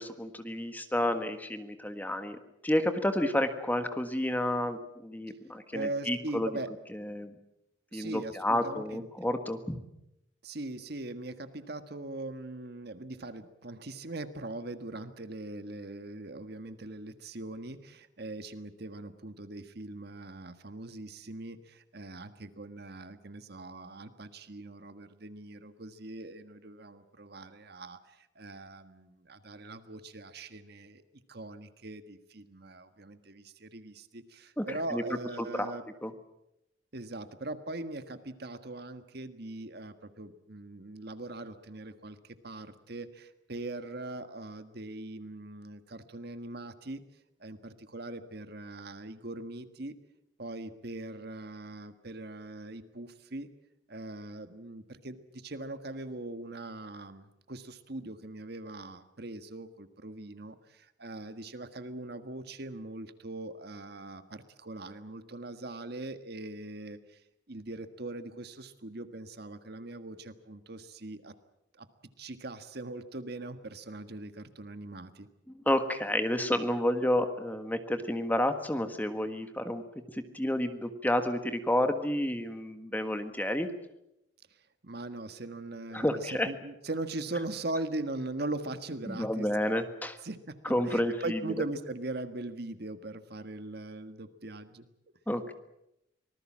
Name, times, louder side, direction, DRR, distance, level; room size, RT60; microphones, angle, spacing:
voice 1, 0.0-2.4 2.6-6.5 6.9-7.3 7.9-9.8 34.6-35.0 35.5-35.7 36.0-36.1 75.7-79.8 80.1-83.7 85.9-86.5 89.1-90.2 90.6-91.4 95.3-95.5, left 1 dB, 10° left, 8 dB, 1.5 m, -30 dB
voice 2, 5.7-6.7 7.9-9.1 10.4-31.0 31.3-35.8 36.9-47.0 47.4-49.9 50.4-53.5 53.9-67.2 67.5-71.3 71.7-71.9 72.2-75.3 84.5-89.8 90.2-94.9, right 2 dB, 55° right, 10 dB, 1.6 m, -41 dB
25.5 x 19.5 x 7.5 m, 0.85 s
head